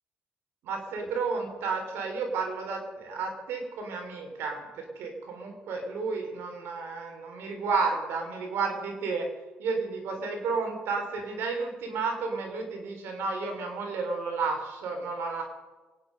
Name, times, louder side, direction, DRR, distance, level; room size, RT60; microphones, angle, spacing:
voice 1, 0.6-9.3 9.6-15.4, right 4 dB, 85° right, 3 dB, 3.8 m, -32 dB
23.5 x 9.9 x 5.3 m, 1.2 s
cardioid pair, 80°, 4 cm